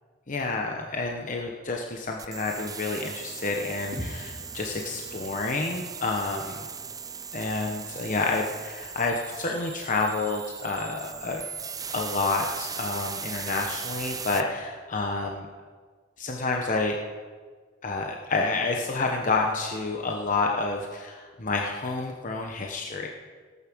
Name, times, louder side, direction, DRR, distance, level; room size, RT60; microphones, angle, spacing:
voice 1, 0.3-6.7 7.3-11.4 11.9-15.5 16.2-17.0 17.8-23.1, left 3 dB, 40° left, 1 dB, 1.0 m, -29 dB
sound 1, 2.2-14.4, right 6 dB, 20° right, 0.6 m, -38 dB
sound 2, 3.9-7.9, equal, 65° right, 3.8 m, -43 dB
17.0 x 9.7 x 6.2 m, 1.5 s
head